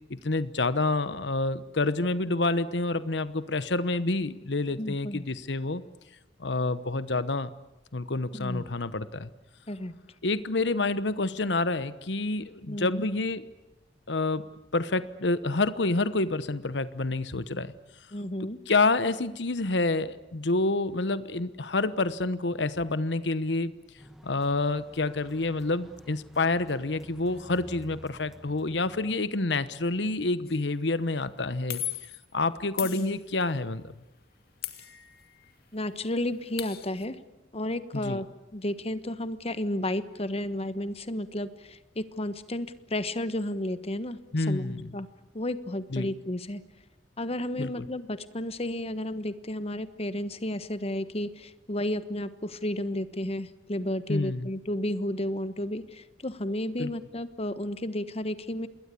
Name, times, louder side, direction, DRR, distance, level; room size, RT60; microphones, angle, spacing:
voice 1, 0.1-5.8 6.4-7.5 7.9-9.3 10.2-13.5 14.1-14.4 14.7-17.7 18.4-23.7 24.2-31.8 32.3-33.9 37.9-38.2 44.3-45.0 45.9-46.1 47.6-47.9 54.1-54.5 56.8-56.9, left 2 dB, 75° left, 14 dB, 1.1 m, -28 dB
voice 2, 4.8-5.3 8.3-8.6 9.7-9.9 12.7-13.0 18.1-18.6 32.8-33.2 35.7-37.2 37.5-38.3 38.5-44.2 44.5-45.1 45.3-46.6 47.2-58.7, left 1 dB, 35° left, 13 dB, 1.3 m, -32 dB
sound 1, 24.0-29.1, equal, ahead, 1.1 m, -50 dB
sound 2, 30.5-30.7 31.7-32.2 32.8-33.6 34.6-35.5 35.8-35.9 36.2-37.0, left 13 dB, 60° left, 2.3 m, -38 dB
27.5 x 21.5 x 8.4 m, 0.99 s
head